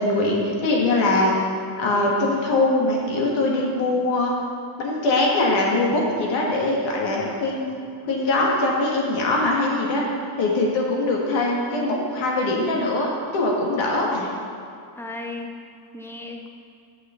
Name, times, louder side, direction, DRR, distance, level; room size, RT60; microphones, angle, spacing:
voice 1, 0.0-1.3 1.8-4.3 4.8-7.8 8.0-10.0 10.4-14.3, left 2 dB, 60° left, -2 dB, 1.7 m, -22 dB
voice 2, 15.0-16.5, left 2 dB, 5° left, 2 dB, 0.4 m, -36 dB
6.4 x 5.8 x 7.0 m, 2.4 s
cardioid pair, 155°, 50 cm